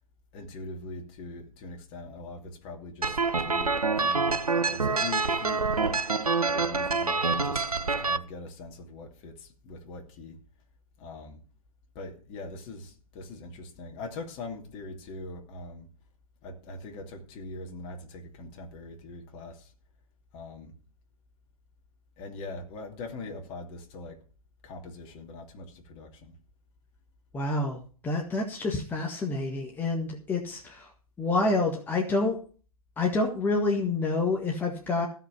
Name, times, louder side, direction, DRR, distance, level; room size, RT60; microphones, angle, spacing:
voice 1, 0.3-6.0 6.5-7.6 8.0-10.4 11.0-11.4 11.9-15.9 16.4-19.7 20.3-20.7 22.2-24.2 24.6-26.4, left 2 dB, 30° left, 2.8 m, -42 dB
sound 1, 3.0-8.2, right 4 dB, 80° right, 1.0 m, -26 dB
voice 2, 27.3-30.9 31.2-32.4 33.0-35.1, left 3 dB, 10° left, 1.7 m, -28 dB
16.0 x 5.7 x 7.0 m
figure-of-eight pair, 120°, 19 cm